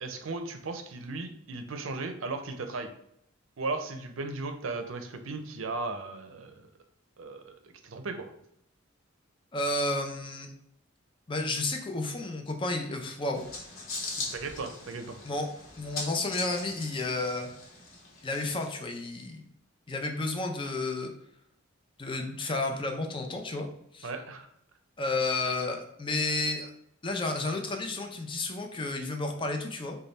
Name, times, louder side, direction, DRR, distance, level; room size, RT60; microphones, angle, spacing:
voice 1, 0.0-2.9 3.6-6.7 7.2-7.5 7.8-8.3 14.3-15.2 24.0-24.5, right 3 dB, 75° right, 7 dB, 0.5 m, -36 dB
voice 2, 9.5-10.5 11.3-13.4 15.2-15.5 15.8-17.5 18.2-19.4 19.9-21.1 22.0-23.7 23.9-24.1 25.0-26.7 27.0-30.0, left 2 dB, 25° left, 4 dB, 0.5 m, -31 dB
sound 1, 13.3-19.1, left 3 dB, 80° left, 1.0 m, -40 dB
3.3 x 2.2 x 4.0 m, 0.73 s
head